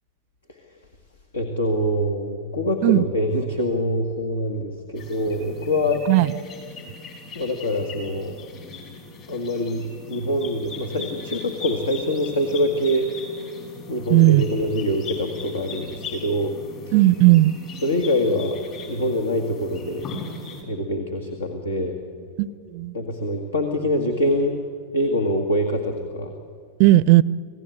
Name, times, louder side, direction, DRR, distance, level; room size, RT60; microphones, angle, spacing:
voice 1, 0.5-0.9 1.3-6.1 7.4-8.4 9.3-13.1 13.9-16.5 16.9-17.0 17.8-18.6 18.9-20.1 20.6-22.0 22.9-24.6 24.9-26.3, equal, 70° left, 5 dB, 1.9 m, -24 dB
sound 1, 4.9-20.6, left 4 dB, 40° left, 5.6 m, -39 dB
voice 2, 14.1-14.4 16.9-17.6 22.4-22.9 26.8-27.2, right 17 dB, 45° right, 21 dB, 0.5 m, -15 dB
27.0 x 17.0 x 9.0 m, 2.1 s
figure-of-eight pair, 90°, 0 cm